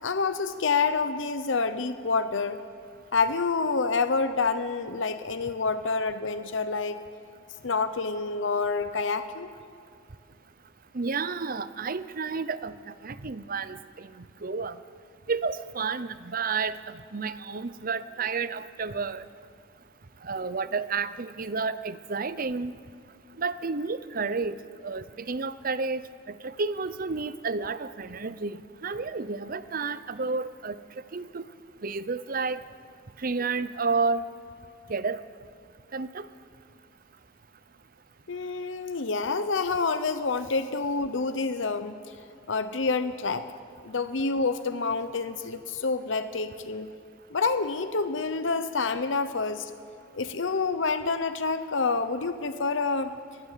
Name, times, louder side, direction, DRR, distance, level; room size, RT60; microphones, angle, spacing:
voice 1, 0.0-2.6 3.1-7.0 7.6-9.5 38.3-42.0 42.5-43.5 43.8-46.9 47.3-49.7 50.1-53.1, left 4 dB, 70° left, 10 dB, 0.9 m, -28 dB
voice 2, 10.9-12.7 13.0-14.8 15.3-19.2 20.2-22.7 23.4-24.6 24.8-30.8 31.1-31.4 31.8-32.6 33.2-34.2 34.9-35.2 35.9-36.3, right 4 dB, 45° right, 14 dB, 0.8 m, -31 dB
23.5 x 19.0 x 7.5 m, 2.3 s
head